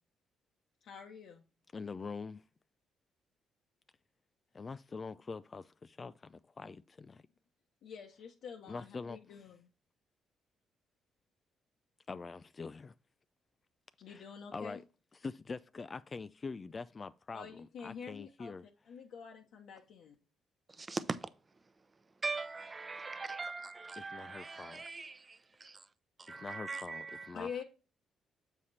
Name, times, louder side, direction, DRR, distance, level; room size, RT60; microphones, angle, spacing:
voice 1, 0.8-1.4 7.8-9.7 14.0-14.8 17.3-20.1 27.3-27.6, left 6 dB, 75° left, 0.9 m, -47 dB
voice 2, 1.7-2.4 4.5-7.2 8.7-9.2 12.1-12.9 14.1-14.2 14.5-14.8 15.2-17.5 17.8-18.6 24.1-24.8 26.3-27.5, left 4 dB, 35° left, 0.3 m, -44 dB
voice 3, 20.7-21.3 22.2-25.9 26.2-27.4, right 3 dB, 30° right, 0.7 m, -41 dB
7.2 x 4.9 x 4.1 m
cardioid pair, 90°, 0 cm